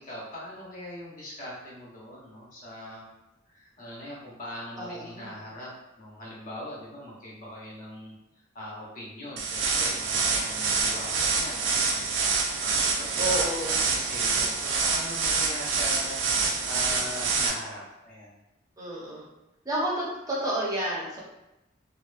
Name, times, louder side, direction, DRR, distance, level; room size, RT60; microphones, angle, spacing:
voice 1, 0.0-3.1 3.5-5.7 6.0-8.1 8.5-12.2 12.6-18.3, left 1 dB, 45° left, -5 dB, 0.7 m, -41 dB
voice 2, 4.8-5.3 13.2-13.8 18.8-19.3 19.6-21.2, right 1 dB, 20° right, -5 dB, 0.6 m, -30 dB
sound 1, 9.4-17.5, right 4 dB, 70° right, 0.4 m, -26 dB
2.5 x 2.1 x 2.4 m, 0.91 s
head